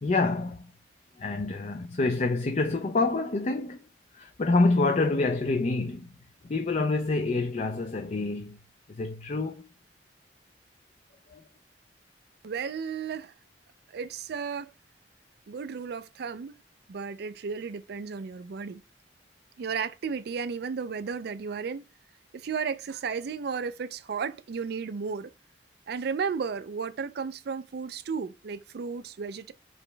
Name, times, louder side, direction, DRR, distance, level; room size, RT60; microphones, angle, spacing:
voice 1, 0.0-0.6 1.2-3.8 4.1-6.1 6.5-8.6 8.9-9.6 11.3-11.4, left 3 dB, 40° left, 0.5 m, -27 dB
voice 2, 12.4-13.3 13.9-14.7 15.5-16.6 16.9-18.8 19.6-21.9 22.3-25.3 25.9-29.5, right 5 dB, 65° right, 0.4 m, -34 dB
5.0 x 3.0 x 3.3 m
head